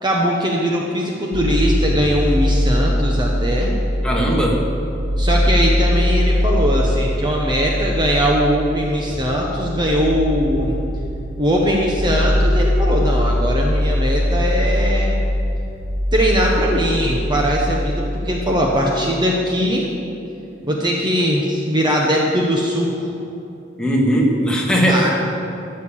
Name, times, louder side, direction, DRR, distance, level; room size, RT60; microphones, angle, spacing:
voice 1, 0.0-3.7 5.2-10.8 11.4-15.2 16.1-19.9 20.6-23.1 24.9-25.1, equal, 25° right, -1 dB, 1.1 m, -20 dB
sound 1, 1.3-19.3, equal, 85° right, 1.4 m, -21 dB
voice 2, 4.0-4.6 23.8-25.1, equal, 5° left, -3 dB, 1.8 m, -18 dB
14.0 x 6.7 x 7.3 m, 2.7 s
head